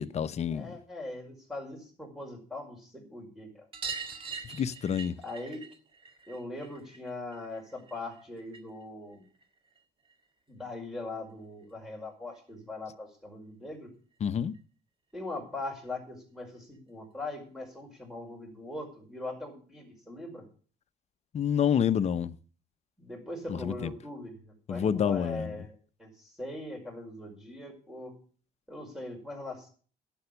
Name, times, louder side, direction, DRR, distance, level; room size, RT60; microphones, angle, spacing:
voice 1, 0.0-0.8 4.4-5.2 14.2-14.5 21.3-22.4 23.5-23.9 24.7-25.6, left 8 dB, 40° left, 0.7 m, -28 dB
voice 2, 0.5-3.7 5.2-5.6 6.3-9.3 10.5-13.9 15.1-20.4 23.0-24.4 24.7-28.1 28.7-29.7, left 2 dB, 5° right, 5.1 m, -41 dB
sound 1, 3.7-8.8 9.1-10.3 11.6-11.7 11.9-12.0 12.3-12.4 13.7-13.8 14.1-14.2 14.5-14.6 15.9-16.0 16.7-16.8, right 5 dB, 30° right, 1.8 m, -43 dB
11.5 x 8.0 x 7.1 m
cardioid pair, 110°, 17 cm